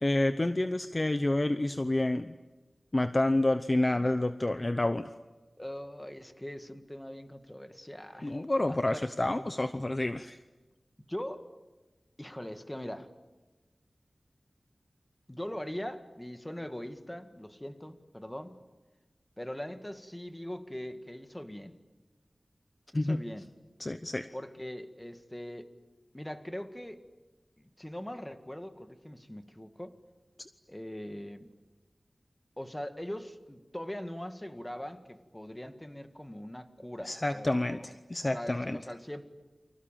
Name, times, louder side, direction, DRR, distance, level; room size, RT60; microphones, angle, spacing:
voice 1, 0.0-2.3 2.9-5.1 8.2-10.4 22.9-23.2 23.8-24.3 37.0-38.8, left 1 dB, 35° left, 10 dB, 0.9 m, -29 dB
voice 2, 5.6-8.4 8.7-9.0 11.1-11.6 12.2-13.1 15.3-18.6 19.4-21.8 22.9-23.5 24.3-25.7 26.1-27.0 27.6-29.9 30.7-31.5 32.6-37.8 38.3-39.2, left 1 dB, 15° left, 8 dB, 1.9 m, -41 dB
30.0 x 25.5 x 7.5 m, 1.2 s
wide cardioid pair, 75°, 0 cm